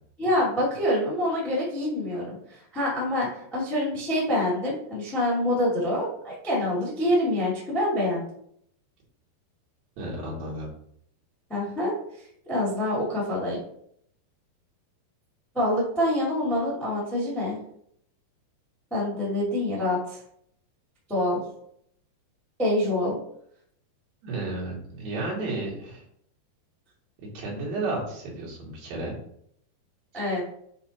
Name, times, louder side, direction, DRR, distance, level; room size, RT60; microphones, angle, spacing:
voice 1, 0.2-8.2 11.5-13.6 15.5-17.6 18.9-20.2 21.1-21.4 22.6-23.2 30.1-30.5, left 1 dB, ahead, -5 dB, 0.5 m, -26 dB
voice 2, 10.0-10.7 24.2-26.0 27.3-29.2, right 2 dB, 60° right, -5 dB, 3.4 m, -32 dB
8.3 x 3.0 x 4.2 m, 0.69 s
omnidirectional pair, 5.0 m